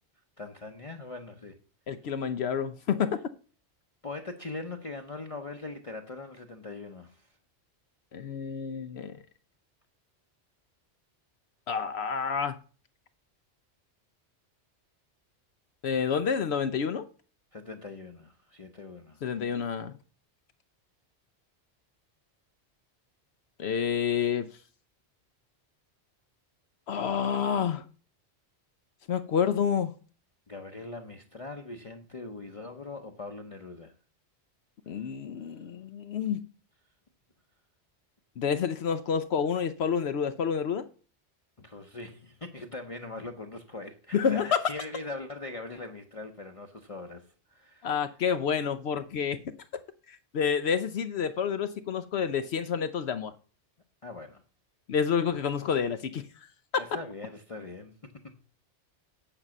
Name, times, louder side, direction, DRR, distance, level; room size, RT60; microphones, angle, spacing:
voice 1, 0.4-1.6 4.0-7.3 17.5-19.2 30.5-33.9 41.6-47.9 54.0-54.4 56.8-58.4, left 3 dB, 35° left, 0.8 m, -41 dB
voice 2, 1.9-3.2 8.1-9.2 11.7-12.6 15.8-17.1 19.2-20.0 23.6-24.5 26.9-27.9 29.1-29.9 34.9-36.5 38.4-40.9 44.1-44.6 47.8-49.4 49.7-49.8 50.1-53.3 54.9-56.3, left 7 dB, 70° left, 0.9 m, -29 dB
8.9 x 5.4 x 6.0 m
omnidirectional pair, 1.2 m